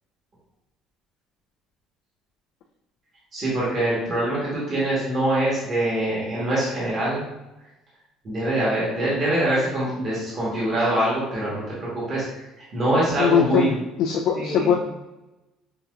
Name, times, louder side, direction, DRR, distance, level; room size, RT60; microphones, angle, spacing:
voice 1, 3.3-7.2 8.2-12.4 12.7-13.8 14.3-14.7, right 1 dB, 30° right, -7 dB, 1.3 m, -24 dB
voice 2, 13.2-14.7, left 8 dB, 70° left, -1 dB, 0.4 m, -21 dB
5.6 x 2.7 x 2.4 m, 0.99 s
cardioid pair, 155°, 0 cm